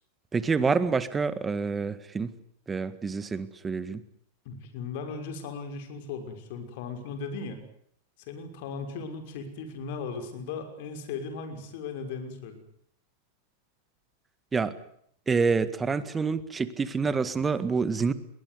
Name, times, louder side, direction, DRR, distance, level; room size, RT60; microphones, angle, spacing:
voice 1, 0.3-2.3 2.7-4.0 14.5-14.7 15.3-18.1, right 5 dB, 15° right, 14 dB, 1.9 m, -27 dB
voice 2, 4.4-7.6 8.2-12.6, left 5 dB, 60° left, 7 dB, 6.0 m, -37 dB
22.0 x 20.0 x 9.7 m, 0.67 s
hypercardioid pair, 110°, 0 cm